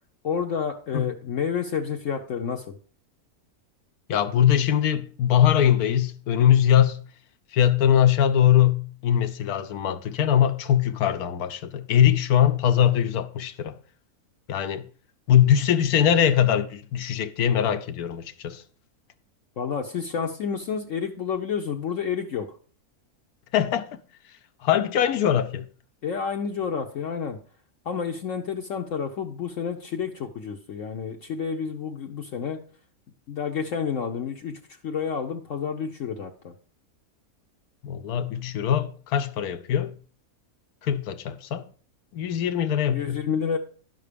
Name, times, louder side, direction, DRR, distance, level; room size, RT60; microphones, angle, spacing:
voice 1, 0.2-2.8 19.6-22.5 26.0-27.4 27.8-32.6 33.3-36.5 42.9-43.6, left 6 dB, 60° left, 1.1 m, -30 dB
voice 2, 4.1-7.0 7.5-13.8 14.5-14.8 15.3-18.6 23.5-23.9 24.6-25.7 37.8-39.9 40.8-41.7 42.1-43.2, left 10 dB, 80° left, 1.2 m, -21 dB
11.0 x 5.9 x 5.1 m
omnidirectional pair, 1.6 m